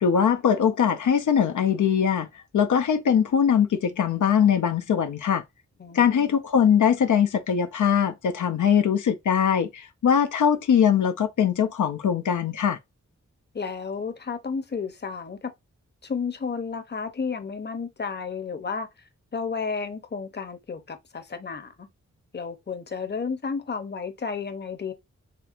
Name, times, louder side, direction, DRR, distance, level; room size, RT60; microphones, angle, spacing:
voice 1, 0.0-2.3 2.5-5.4 5.9-12.8, left 8 dB, 85° left, 0.5 m, -21 dB
voice 2, 5.8-6.4 13.5-15.5 16.0-18.9 19.3-21.9 22.3-24.9, left 5 dB, 35° left, 0.7 m, -32 dB
4.4 x 3.3 x 2.5 m
wide cardioid pair, 90°, 29 cm